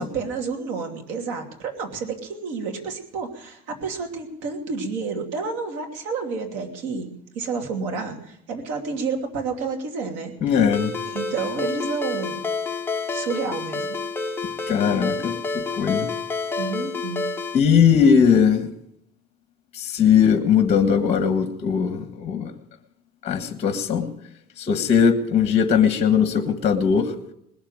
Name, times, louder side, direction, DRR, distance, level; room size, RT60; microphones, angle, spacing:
voice 1, 0.0-7.1 7.3-10.6 11.1-12.4 13.1-14.0 16.6-17.2, right 4 dB, 90° right, 3 dB, 2.8 m, -30 dB
voice 2, 10.4-11.0 14.7-15.3 15.8-16.1 17.5-18.7 19.7-22.5 23.2-24.0 24.6-27.1, left 7 dB, 35° left, 7 dB, 1.6 m, -19 dB
Ringtone, 10.7-17.6, left 3 dB, 10° left, 0.8 m, -29 dB
20.5 x 7.3 x 8.9 m, 0.75 s
cardioid pair, 135°, 18 cm